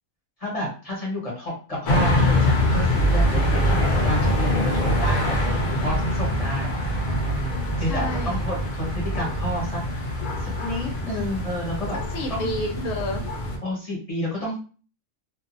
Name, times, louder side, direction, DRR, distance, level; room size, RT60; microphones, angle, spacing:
voice 1, 0.4-9.8 10.4-12.0 12.3-12.5 13.6-14.6, equal, 30° left, -5 dB, 1.0 m, -30 dB
sound 1, 1.8-13.6, left 1 dB, 55° left, 0.5 m, -24 dB
voice 2, 7.9-8.4 12.1-13.6, left 1 dB, 75° left, 2 dB, 1.0 m, -31 dB
2.4 x 2.4 x 2.5 m, 0.38 s
omnidirectional pair, 1.5 m